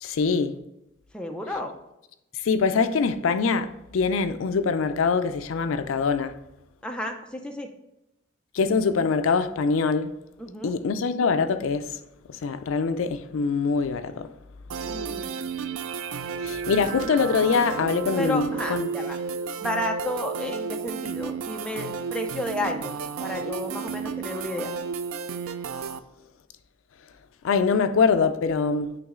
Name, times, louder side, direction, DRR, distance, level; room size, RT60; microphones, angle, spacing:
voice 1, 0.0-0.6 2.4-6.3 8.5-10.1 10.6-12.0 12.3-14.3 16.4-18.9 27.4-29.0, left 5 dB, 75° left, 0.4 m, -24 dB
voice 2, 1.1-1.7 6.8-7.7 10.4-10.8 14.9-15.3 18.2-19.2 19.6-22.9 23.2-24.7, left 1 dB, 5° left, 0.5 m, -32 dB
sound 1, 14.7-26.0, right 6 dB, 80° right, 0.4 m, -32 dB
9.1 x 3.1 x 3.7 m
head